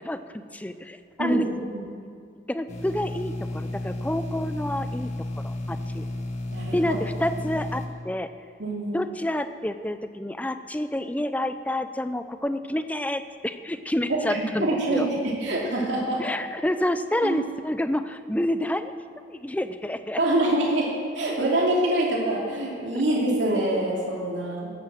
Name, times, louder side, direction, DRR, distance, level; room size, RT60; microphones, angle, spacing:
voice 1, 0.0-1.5 2.4-5.1 5.4-6.0 6.7-8.3 8.9-15.1 16.2-18.9 19.3-20.2 22.9-23.0, left 1 dB, 10° left, 11 dB, 0.5 m, -29 dB
voice 2, 1.2-1.8 6.5-7.0 8.6-9.0 14.1-16.2 17.2-17.4 20.2-20.9 21.1-24.7, right 1 dB, 85° right, -3 dB, 2.7 m, -25 dB
sound 1, 2.7-7.9, left 1 dB, 40° left, 1.7 m, -32 dB
13.0 x 11.5 x 7.6 m, 2.3 s
head